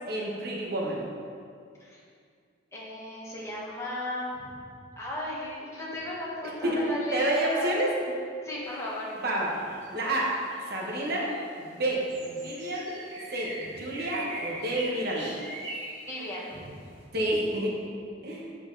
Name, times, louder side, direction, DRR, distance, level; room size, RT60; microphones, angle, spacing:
voice 1, 0.1-1.0 6.6-6.8 7.1-8.0 9.2-9.5 9.9-10.3 10.7-11.3 11.6-13.0 13.3-15.3 17.1-17.8 18.2-18.4, right 1 dB, 55° right, -3 dB, 1.3 m, -29 dB
voice 2, 2.7-4.6 5.0-7.7 8.4-9.1 16.1-16.8, left 1 dB, 15° left, -6 dB, 1.4 m, -36 dB
sound 1, 8.6-17.0, right 1 dB, 85° right, 1.8 m, -42 dB
8.2 x 5.2 x 4.0 m, 2.2 s
head